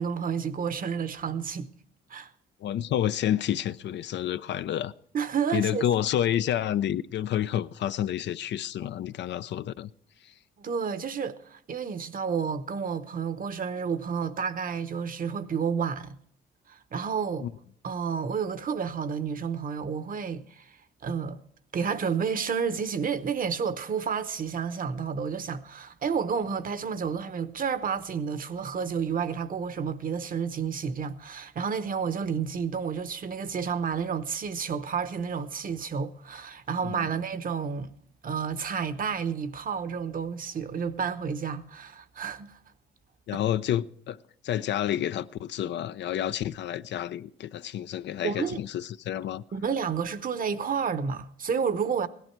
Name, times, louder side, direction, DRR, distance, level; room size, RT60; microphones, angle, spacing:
voice 1, 0.0-1.7 2.1-2.3 5.1-5.8 10.6-16.2 16.7-17.5 17.8-20.8 21.0-21.4 21.7-37.9 38.2-42.6 43.3-43.4 48.2-48.6 49.5-52.1, right 6 dB, 45° right, 0.9 m, -30 dB
voice 2, 2.6-4.9 5.5-9.9 10.2-10.3 17.4-17.5 36.8-37.1 43.3-49.4, left 11 dB, 65° left, 0.5 m, -29 dB
16.5 x 11.5 x 4.5 m
cardioid pair, 90°, 20 cm